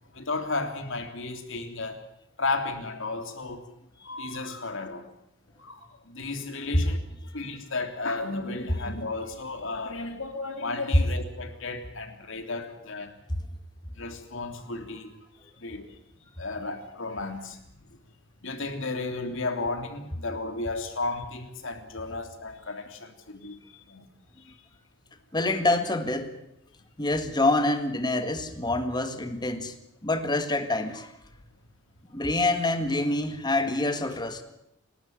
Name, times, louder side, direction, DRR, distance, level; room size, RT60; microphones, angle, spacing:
voice 1, 0.1-2.0 2.4-3.6 4.0-5.0 5.6-13.1 14.0-15.1 15.6-15.9 16.4-17.6 18.4-24.1 24.4-24.6, left 3 dB, 65° left, 6 dB, 3.2 m, -34 dB
voice 2, 25.3-26.3 27.0-29.8 30.0-31.1 32.1-34.4, left 2 dB, 20° left, 7 dB, 1.8 m, -26 dB
29.0 x 13.0 x 9.4 m, 0.79 s
head